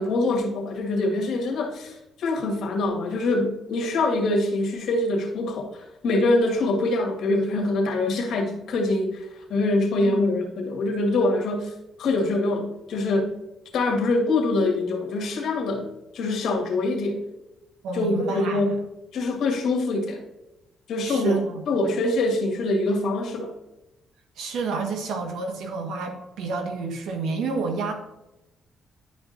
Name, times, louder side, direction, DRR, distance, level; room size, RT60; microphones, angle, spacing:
voice 1, 0.0-11.7 12.0-13.3 13.7-15.9 16.1-17.2 17.9-18.8 19.1-20.2 20.9-23.5, left 2 dB, 75° left, 2 dB, 1.8 m, -24 dB
voice 2, 17.8-18.6 21.0-21.6 24.4-27.9, right 4 dB, 85° right, 4 dB, 1.4 m, -29 dB
11.0 x 5.2 x 2.6 m, 0.93 s
cardioid pair, 90°, 0 cm